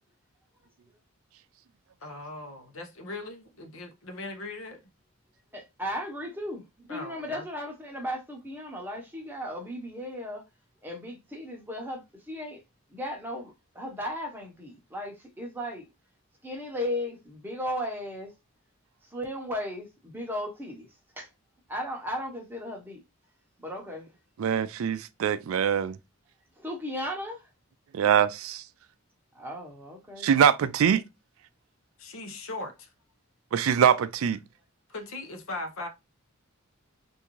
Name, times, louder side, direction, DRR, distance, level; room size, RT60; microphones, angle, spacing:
voice 1, 2.0-4.8 6.9-7.4 32.0-32.9 34.9-35.9, left 2 dB, 70° left, 0.8 m, -39 dB
voice 2, 5.5-6.6 6.9-10.4 10.8-12.6 12.9-15.8 16.4-18.3 19.1-20.9 21.2-21.3 21.7-23.0 23.6-24.1 26.6-27.4 29.3-30.3, left 1 dB, 10° right, 0.8 m, -36 dB
voice 3, 24.4-26.0 27.9-28.6 30.2-31.0 33.5-34.4, right 8 dB, 70° right, 0.3 m, -23 dB
3.5 x 2.6 x 3.0 m
head